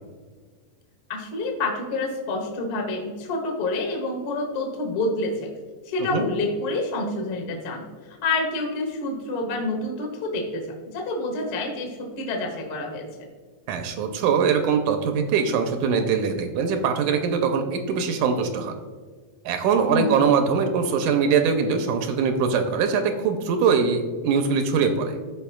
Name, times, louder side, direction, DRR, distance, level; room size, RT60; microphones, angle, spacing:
voice 1, 1.1-5.5 5.8-13.1 19.9-20.1, left 2 dB, 60° left, 1 dB, 1.6 m, -28 dB
voice 2, 13.7-18.8 19.5-25.2, right 6 dB, 80° right, 6 dB, 2.0 m, -22 dB
14.0 x 4.8 x 2.3 m, 1.5 s
omnidirectional pair, 3.6 m